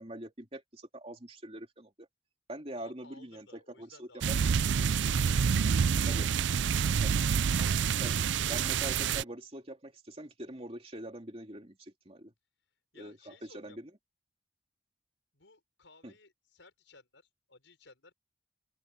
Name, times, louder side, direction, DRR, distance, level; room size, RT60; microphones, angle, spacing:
voice 1, 0.0-2.1 2.5-4.6 6.1-6.3 7.0-7.2 8.0-12.3 12.9-13.9 16.0-16.1, right 1 dB, 30° right, 3.1 m, -44 dB
voice 2, 2.7-4.3 5.3-6.4 12.9-13.8 15.3-18.1, left 3 dB, 85° left, 5.5 m, -58 dB
sound 1, 4.2-9.2, right 6 dB, 75° right, 0.4 m, -27 dB
open air
head